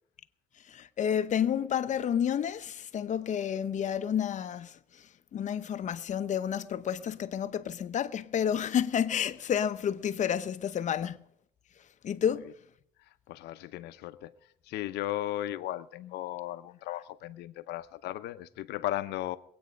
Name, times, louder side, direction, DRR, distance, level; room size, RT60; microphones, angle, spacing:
voice 1, 0.6-11.2 12.0-12.5, left 9 dB, 45° left, 0.8 m, -30 dB
voice 2, 13.0-19.4, left 14 dB, 80° left, 0.8 m, -36 dB
22.5 x 8.9 x 5.2 m
cardioid pair, 110°, 17 cm